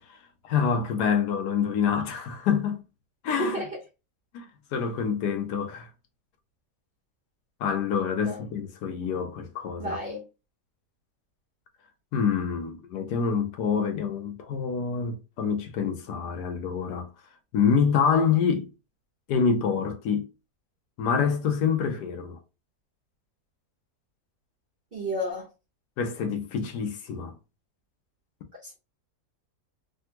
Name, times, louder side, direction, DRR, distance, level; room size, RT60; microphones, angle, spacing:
voice 1, 0.4-2.8 3.2-3.6 4.3-4.4 4.7-5.9 7.6-10.0 12.1-17.1 17.5-18.7 19.3-20.3 21.0-22.4 26.0-27.3, left 6 dB, 85° left, 1.3 m, -26 dB
voice 2, 3.4-3.8 8.2-8.5 9.8-10.3 24.9-25.5 28.6-28.8, right 1 dB, 40° right, 1.0 m, -32 dB
3.4 x 2.3 x 2.8 m
omnidirectional pair, 1.7 m